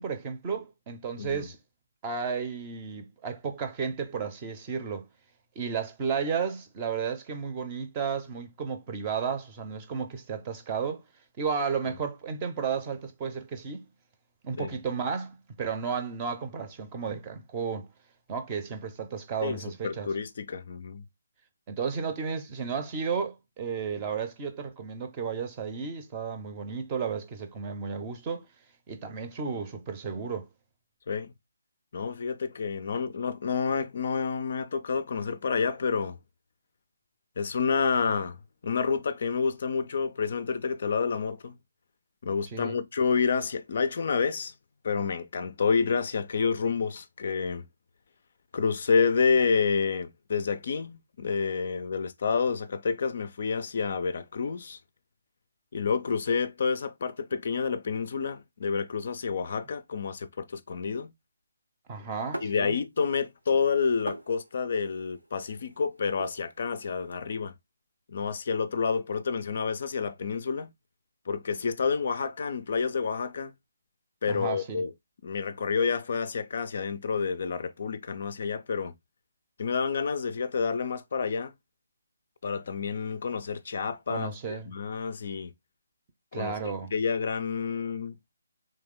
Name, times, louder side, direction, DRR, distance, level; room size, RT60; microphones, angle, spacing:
voice 1, 0.0-1.6 2.0-5.1 5.6-11.0 11.4-13.9 14.4-17.9 18.3-20.1 21.7-28.5 28.9-30.5 42.5-42.8 61.9-62.8 74.3-74.8 84.1-84.7 86.3-86.9, right 6 dB, 20° right, 0.6 m, -33 dB
voice 2, 19.4-21.0 31.1-31.3 31.9-36.2 37.4-38.4 38.6-41.6 42.2-44.5 44.8-47.6 48.5-54.8 55.7-61.1 62.4-67.5 68.1-70.7 71.3-73.5 74.2-74.9 75.2-78.9 79.6-81.5 82.4-85.5 86.3-88.2, left 5 dB, 45° left, 0.4 m, -29 dB
sound 1, 62.3-63.2 63.5-67.2, right 1 dB, 85° right, 0.9 m, -43 dB
3.4 x 3.1 x 3.6 m
figure-of-eight pair, 145°, 0 cm